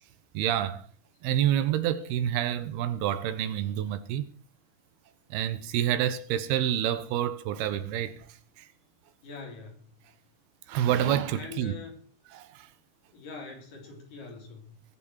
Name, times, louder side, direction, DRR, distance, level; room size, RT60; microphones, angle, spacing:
voice 1, 0.3-0.9 1.2-4.3 5.3-8.3 8.6-8.7 10.7-11.7 12.3-12.7, right 11 dB, 85° right, 3.0 m, -28 dB
voice 2, 9.2-9.8 11.3-12.0 13.1-14.8, left 4 dB, 55° left, 5.1 m, -43 dB
21.0 x 7.5 x 6.3 m
omnidirectional pair, 4.4 m